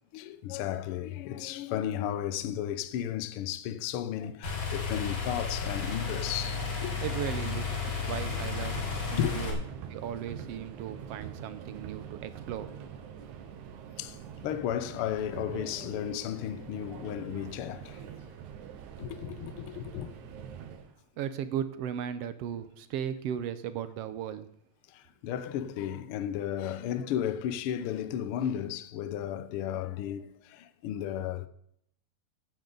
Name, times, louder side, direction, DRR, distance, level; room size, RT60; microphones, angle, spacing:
voice 1, 0.1-6.9 9.2-9.4 14.0-18.0 19.0-20.1 24.9-31.5, left 10 dB, 75° left, 1.2 m, -34 dB
sound 1, 4.4-9.5, left 5 dB, 45° left, 3.4 m, -33 dB
Subway metro underground, 6.1-20.9, right 8 dB, 85° right, 2.5 m, -44 dB
voice 2, 7.0-8.7 9.1-9.6 9.9-12.7 21.2-24.5, right 9 dB, 70° right, 1.6 m, -36 dB
16.0 x 9.1 x 4.0 m
omnidirectional pair, 3.3 m